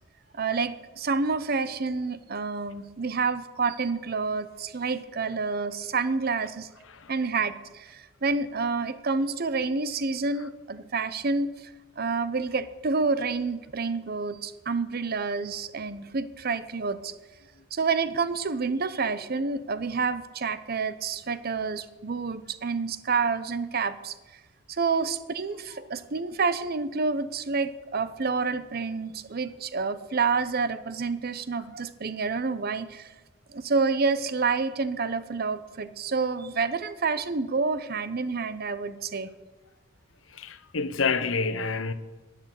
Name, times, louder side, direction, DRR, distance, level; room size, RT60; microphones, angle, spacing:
voice 1, 0.3-6.7 7.1-17.1 17.7-24.1 24.7-33.1 33.5-39.3, right 4 dB, 50° right, 0.8 m, -28 dB
voice 2, 40.3-41.9, left 4 dB, 80° left, 1.0 m, -28 dB
11.0 x 10.5 x 8.4 m
head